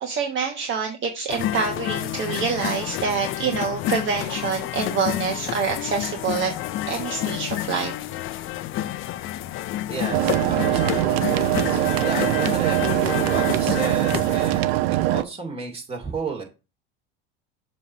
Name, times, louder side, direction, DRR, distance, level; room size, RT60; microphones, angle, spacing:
voice 1, 0.0-6.5 6.9-7.9, right 5 dB, 40° right, 3 dB, 1.2 m, -26 dB
sound 1, 1.3-14.6, left 13 dB, 45° left, 0.5 m, -29 dB
voice 2, 9.9-16.4, right 4 dB, 20° right, 0 dB, 2.4 m, -33 dB
sound 2, 10.1-15.2, right 15 dB, 80° right, 0.5 m, -22 dB
7.1 x 3.1 x 5.6 m, 0.30 s
supercardioid pair, 100°, 29 cm